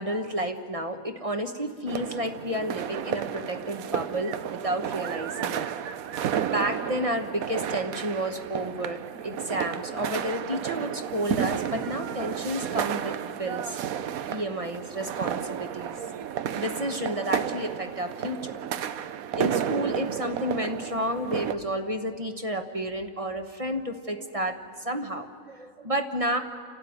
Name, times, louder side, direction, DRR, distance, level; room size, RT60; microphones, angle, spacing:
voice 1, 0.0-5.7 6.4-13.8 14.3-16.0 16.5-18.6 19.3-26.4, equal, 25° right, 6 dB, 1.1 m, -31 dB
sound 1, 1.9-21.6, right 9 dB, 75° right, 1.2 m, -32 dB
29.5 x 12.5 x 9.5 m, 2.1 s
omnidirectional pair, 1.5 m